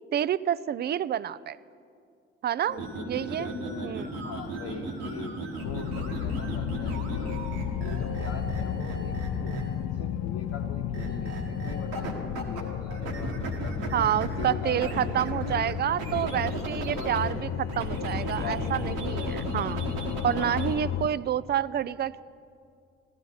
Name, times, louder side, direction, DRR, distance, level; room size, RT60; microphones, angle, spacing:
voice 1, 0.1-1.6 2.4-3.5 3.8-4.1 13.9-19.8 20.2-22.2, right 10 dB, 35° right, 19 dB, 0.4 m, -28 dB
voice 2, 2.7-7.4 7.8-14.0 14.4-16.5 17.0-17.2 18.4-19.5 20.4-20.7, left 6 dB, 55° left, 0 dB, 0.9 m, -42 dB
sound 1, 2.7-9.9 10.9-12.6 12.9-17.3 17.7-20.8, right 2 dB, 80° right, 1.3 m, -35 dB
sound 2, 5.6-21.1, left 9 dB, 70° left, 0.5 m, -34 dB
15.0 x 11.0 x 4.0 m, 2.3 s
hypercardioid pair, 45°, 30 cm